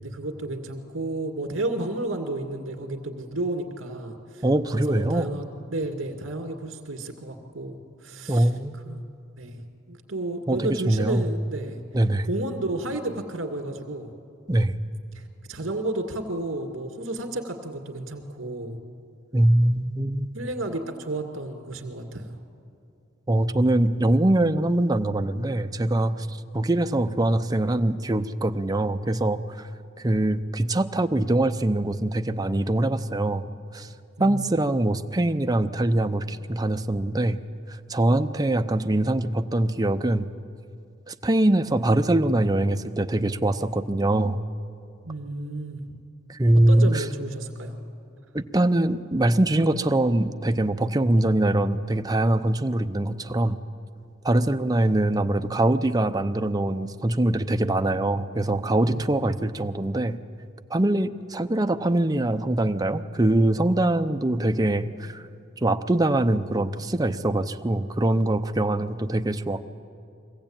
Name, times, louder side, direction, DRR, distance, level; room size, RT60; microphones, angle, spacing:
voice 1, 0.0-4.4 4.7-5.4 5.7-8.5 8.9-9.0 9.4-9.6 9.9-11.8 12.2-14.1 15.1-15.2 15.5-18.8 20.3-22.4 34.2-34.6 45.1-45.8 46.5-47.7 54.3-54.4 58.8-59.4, right 2 dB, 80° right, 4 dB, 2.2 m, -32 dB
voice 2, 4.4-5.3 8.3-8.8 10.5-11.2 11.9-12.3 14.5-14.8 19.3-20.4 23.3-26.3 26.5-29.7 30.0-33.4 33.7-33.9 34.2-37.4 37.9-40.3 41.1-44.4 46.3-47.1 48.3-53.6 54.2-60.2 60.7-65.2 65.6-69.7, right 1 dB, 20° right, 7 dB, 0.6 m, -23 dB
24.0 x 16.0 x 8.9 m, 2.6 s
head